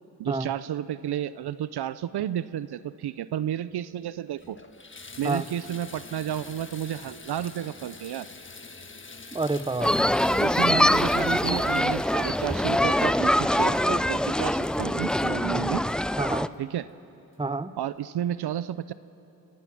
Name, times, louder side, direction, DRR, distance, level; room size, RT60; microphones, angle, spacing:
voice 1, 0.2-4.6 5.2-8.3 10.4-15.9 16.6-16.9 17.8-18.9, right 11 dB, 75° right, 16 dB, 0.6 m, -31 dB
Water tap faucet / Bathtub (filling or washing), 3.7-3.8 4.3-16.7 17.3-17.4 17.9-18.0, left 3 dB, 30° left, 1.4 m, -47 dB
voice 2, 9.3-10.3 15.5-15.7 16.2-16.5 17.4-17.7, right 3 dB, 15° right, 13 dB, 0.8 m, -29 dB
sound 1, 9.8-16.5, left 1 dB, ahead, 0.4 m, -24 dB
28.5 x 16.5 x 5.9 m, 2.9 s
cardioid pair, 55°, 39 cm